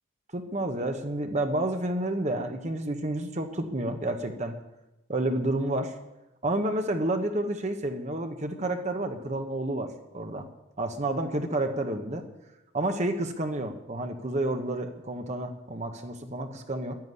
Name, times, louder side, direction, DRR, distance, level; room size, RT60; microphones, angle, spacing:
voice 1, 0.3-4.5 5.1-5.9 6.4-10.4 10.8-12.2 12.7-17.0, right 1 dB, 35° right, 5 dB, 1.2 m, -30 dB
11.0 x 10.5 x 9.7 m, 0.96 s
head